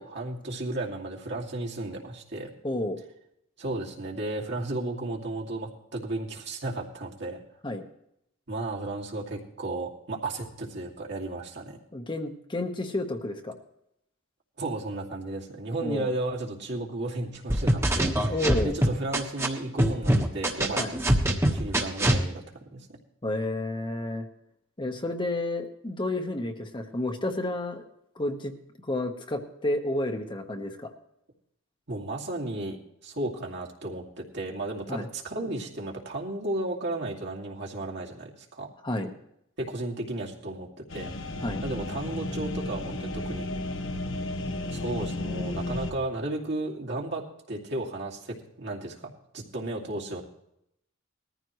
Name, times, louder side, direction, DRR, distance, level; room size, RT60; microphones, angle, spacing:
voice 1, 0.0-2.5 3.6-7.4 8.5-11.8 14.6-18.4 18.6-21.0 21.3-22.4 22.7-22.9 31.9-32.8 33.0-38.7 39.6-41.4 41.6-43.5 44.7-50.2, right 2 dB, 60° right, -1 dB, 2.4 m, -34 dB
voice 2, 2.6-3.0 7.6-7.8 11.9-13.6 15.8-16.1 18.3-18.7 20.8-20.9 23.2-24.3 24.8-27.8 28.2-28.5 28.9-30.9 34.9-35.1 38.8-39.1 41.4-41.6, left 1 dB, 25° left, 5 dB, 1.1 m, -30 dB
sound 1, 17.5-19.5 19.8-22.2, right 1 dB, 15° right, 1.3 m, -23 dB
sound 2, 40.9-45.9, left 2 dB, 85° left, 1.4 m, -33 dB
20.0 x 14.0 x 3.1 m, 0.78 s
head